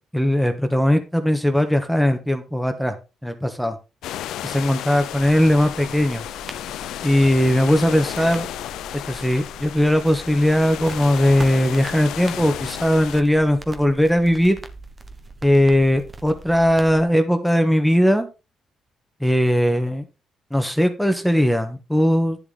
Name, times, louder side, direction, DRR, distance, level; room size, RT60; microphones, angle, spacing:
voice 1, 0.1-2.9 3.2-3.8 4.4-6.2 7.0-8.5 9.1-14.6 15.4-18.3 19.2-20.0 20.5-22.4, equal, ahead, 6 dB, 1.5 m, -19 dB
sound 1, 4.0-13.2, left 12 dB, 85° left, 0.5 m, -33 dB
sound 2, 5.1-17.0, right 3 dB, 30° right, 1.4 m, -41 dB
10.5 x 6.9 x 4.0 m, 0.29 s
cardioid pair, 90°, 0 cm